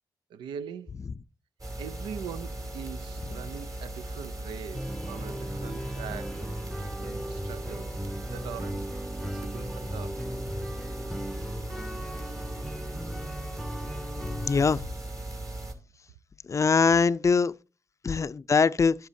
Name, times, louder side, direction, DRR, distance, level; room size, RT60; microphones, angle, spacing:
voice 1, 0.3-1.0 1.8-8.9 9.2-10.2, right 8 dB, 85° right, 0.4 m, -42 dB
sound 1, 1.6-15.7, right 1 dB, 45° right, 2.4 m, -38 dB
sound 2, 4.7-14.8, equal, ahead, 0.7 m, -38 dB
sound 3, 5.3-12.8, right 4 dB, 65° right, 4.3 m, -56 dB
voice 2, 14.4-14.8 16.5-17.5 18.0-18.9, left 5 dB, 40° left, 0.4 m, -22 dB
11.5 x 8.0 x 2.7 m
supercardioid pair, 45°, 8 cm